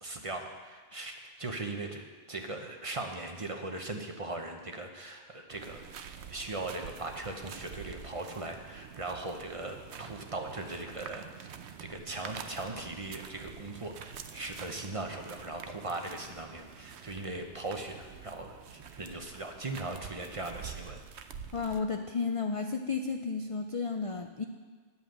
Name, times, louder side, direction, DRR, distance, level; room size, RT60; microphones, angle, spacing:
voice 1, 0.0-5.8 6.3-11.5 11.8-21.0, right 2 dB, 30° right, 3 dB, 0.8 m, -39 dB
sound 1, 5.5-21.8, right 8 dB, 75° right, 0.9 m, -47 dB
voice 2, 21.5-24.4, left 4 dB, 55° left, 5 dB, 0.4 m, -32 dB
10.5 x 5.6 x 7.8 m, 1.4 s
omnidirectional pair, 1.2 m